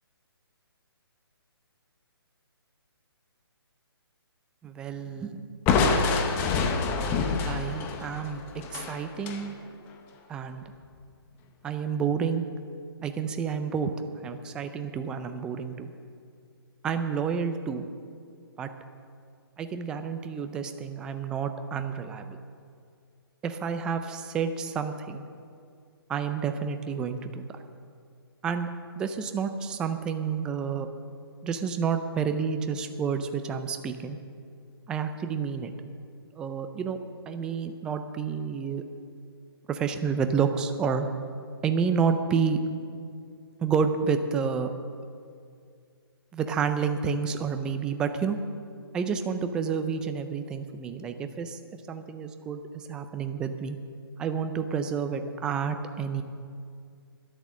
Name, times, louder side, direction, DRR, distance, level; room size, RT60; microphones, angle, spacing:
voice 1, 4.6-5.4 7.5-8.4 8.7-9.5 10.3-10.6 11.6-12.5 13.0-13.9 14.2-15.9 16.8-17.9 18.6-18.7 19.6-22.4 23.4-25.2 26.1-27.4 28.4-28.7 29.0-30.9 31.4-34.2 34.9-35.7 36.4-37.0 37.3-38.8 39.7-41.1 41.6-42.6 43.6-44.7 46.3-48.4 48.9-51.6 51.9-52.6 52.9-53.8 54.2-56.2, right 6 dB, 5° right, 8 dB, 0.3 m, -29 dB
Crushing, 5.7-9.4, left 4 dB, 15° left, 0.8 m, -26 dB
12.0 x 10.5 x 6.2 m, 2.3 s
hypercardioid pair, 155°, 13 cm